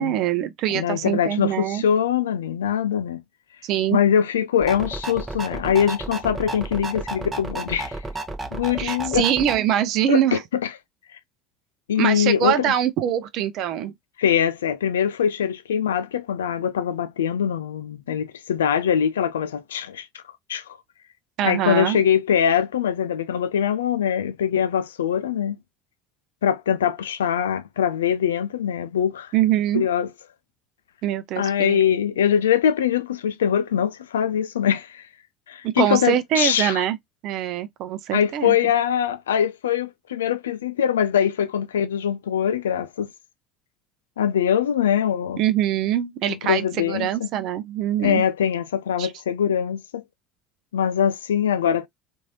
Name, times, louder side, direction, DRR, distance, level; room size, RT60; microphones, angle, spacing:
voice 1, 0.0-1.8 3.6-4.0 8.8-10.4 12.0-13.9 21.4-22.0 29.3-29.9 31.0-31.8 35.6-37.0 37.2-38.6 45.4-48.2 49.0-49.1, right 11 dB, 55° right, 0.6 m, -23 dB
voice 2, 0.7-3.2 3.9-8.0 8.5-9.2 10.1-10.7 11.9-12.7 14.2-20.2 20.5-20.6 21.4-25.6 26.4-29.3 29.7-30.1 31.4-35.1 35.5-36.8 38.1-43.1 44.2-45.4 46.3-47.3 48.0-50.0 50.7-51.9, left 8 dB, 75° left, 0.3 m, -23 dB
sound 1, 4.6-9.6, right 2 dB, 15° right, 0.8 m, -32 dB
3.0 x 2.6 x 2.7 m
figure-of-eight pair, 65°, 0 cm